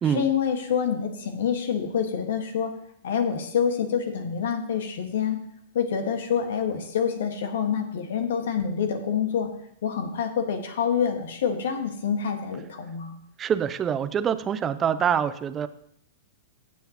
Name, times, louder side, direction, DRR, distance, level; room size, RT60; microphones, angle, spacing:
voice 1, 0.1-2.7 3.0-5.4 5.7-9.5 9.8-13.2, left 7 dB, 65° left, 6 dB, 1.6 m, -27 dB
voice 2, 13.4-15.7, right 8 dB, 25° right, 13 dB, 0.6 m, -25 dB
15.5 x 7.4 x 3.0 m, 0.71 s
hypercardioid pair, 105°, 0 cm